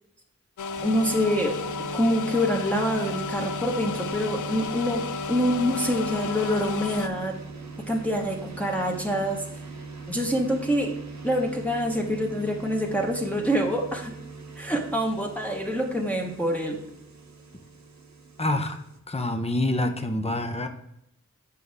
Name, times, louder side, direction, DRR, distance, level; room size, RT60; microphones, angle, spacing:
sound 1, 0.6-7.1, left 5 dB, 85° left, 0.5 m, -33 dB
sound 2, 0.7-19.0, right 4 dB, 70° right, 1.0 m, -40 dB
voice 1, 0.8-1.6 1.9-7.4 7.9-9.4 10.1-10.9 11.2-14.1 14.6-16.8, equal, 5° left, -1 dB, 1.1 m, -26 dB
voice 2, 18.4-18.8 19.1-20.7, left 1 dB, 20° left, 6 dB, 0.7 m, -26 dB
8.4 x 5.4 x 3.5 m, 0.78 s
wide cardioid pair, 70°, 30 cm